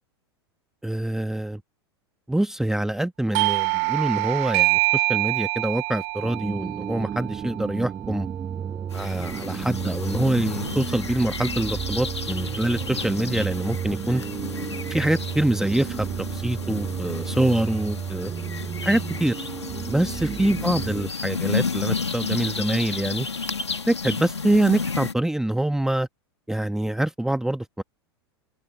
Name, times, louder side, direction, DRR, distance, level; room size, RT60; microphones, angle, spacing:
voice 1, 0.8-1.6 2.3-8.3 8.9-14.2 14.9-18.3 18.8-19.4 19.9-23.3 23.9-26.1 26.5-27.8, right 1 dB, 5° right, 1.3 m, -25 dB
Doorbell, 3.3-8.6, right 35 dB, 45° right, 0.7 m, -25 dB
sound 1, 6.2-21.1, right 8 dB, 25° right, 6.3 m, -32 dB
sound 2, 8.9-25.1, left 4 dB, 85° left, 1.9 m, -32 dB
figure-of-eight pair, 90°, 14 cm